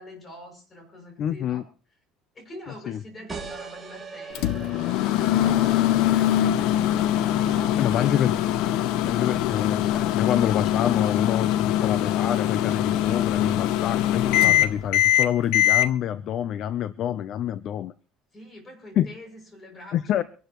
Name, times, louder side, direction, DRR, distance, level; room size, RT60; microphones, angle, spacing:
voice 1, 0.0-1.7 2.3-8.3 18.3-20.2, left 1 dB, 20° left, 2 dB, 6.8 m, -45 dB
voice 2, 1.2-1.6 2.9-3.0 7.8-8.3 9.0-17.9 19.0-19.1 19.9-20.2, left 10 dB, 45° left, 14 dB, 0.7 m, -27 dB
sound 1, 3.3-8.5, right 5 dB, 15° right, 2.8 m, -42 dB
Microwave oven, 4.3-15.9, left 12 dB, 70° left, 0.9 m, -22 dB
25.0 x 12.0 x 3.1 m, 0.39 s
cardioid pair, 145°, 0 cm